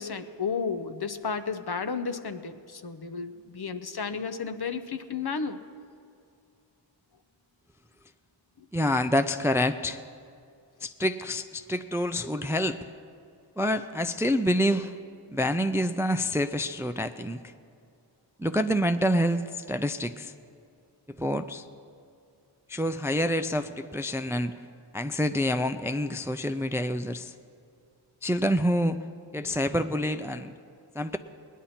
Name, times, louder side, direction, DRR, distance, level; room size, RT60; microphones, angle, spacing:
voice 1, 0.0-5.6 8.6-8.7, left 5 dB, 50° left, 10 dB, 0.7 m, -33 dB
voice 2, 8.7-10.0 10.8-12.8 13.6-15.0 15.3-17.4 18.4-20.3 21.1-21.7 22.7-24.5 24.9-27.3 28.2-29.0 29.3-30.5 30.9-31.2, equal, 5° right, 10 dB, 0.4 m, -27 dB
19.0 x 10.0 x 4.3 m, 2.4 s
wide cardioid pair, 40°, 48 cm